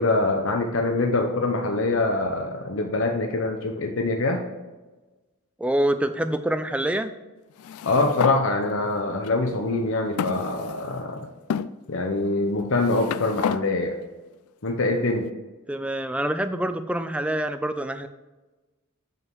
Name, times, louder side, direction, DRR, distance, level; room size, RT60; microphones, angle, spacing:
voice 1, 0.0-4.4 7.8-11.3 11.9-14.0 14.6-15.3, left 2 dB, 60° left, 3 dB, 0.7 m, -24 dB
voice 2, 5.6-7.1 15.7-18.1, right 1 dB, 5° right, 9 dB, 0.3 m, -26 dB
sound 1, 7.6-8.4 9.2-9.3 10.2-11.0 11.5-11.7 12.6-13.6, left 7 dB, 85° left, 0.3 m, -29 dB
7.5 x 5.4 x 4.6 m, 1.2 s
head